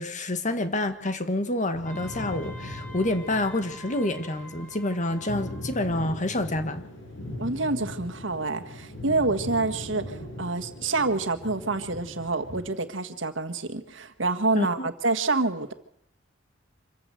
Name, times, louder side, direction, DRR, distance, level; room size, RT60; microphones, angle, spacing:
voice 1, 0.0-6.8 14.5-14.9, left 1 dB, 40° left, 1.8 m, -28 dB
sound 1, 1.7-12.7, left 1 dB, 85° left, 7.4 m, -40 dB
Wind instrument woodwind instrument, 1.8-6.1, equal, 10° left, 3.8 m, -47 dB
voice 2, 7.4-15.7, right 3 dB, 75° right, 1.7 m, -27 dB
25.5 x 15.0 x 7.9 m
head